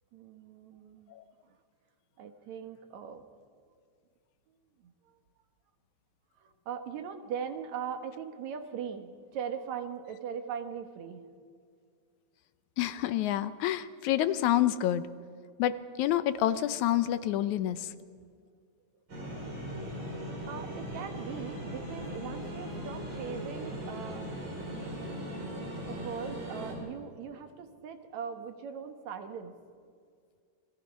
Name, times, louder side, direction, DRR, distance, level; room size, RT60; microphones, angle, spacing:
voice 1, 0.1-1.1 2.2-3.2 4.8-4.9 6.4-11.2 20.5-24.2 25.9-29.5, right 7 dB, 75° right, 7 dB, 2.6 m, -40 dB
voice 2, 12.8-15.0 15.6-17.9, left 12 dB, 85° left, 13 dB, 2.2 m, -28 dB
sound 1, 19.1-26.7, equal, 40° right, 6.4 m, -39 dB
29.0 x 20.0 x 5.4 m, 2.1 s
omnidirectional pair, 3.3 m